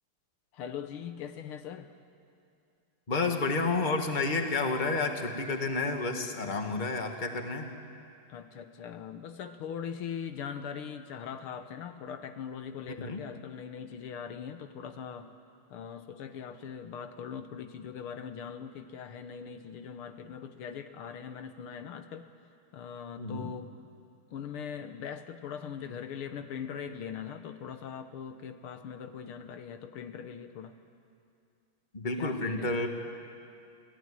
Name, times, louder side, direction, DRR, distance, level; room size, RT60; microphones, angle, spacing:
voice 1, 0.5-1.9 8.3-15.3 15.7-22.3 22.7-23.7 24.3-30.7 32.2-32.9, left 7 dB, 80° left, 8 dB, 1.9 m, -41 dB
voice 2, 3.1-7.7 13.0-13.2 23.2-23.5 31.9-32.9, left 3 dB, 25° left, 4 dB, 1.6 m, -30 dB
27.0 x 16.5 x 9.8 m, 2.5 s
omnidirectional pair, 2.4 m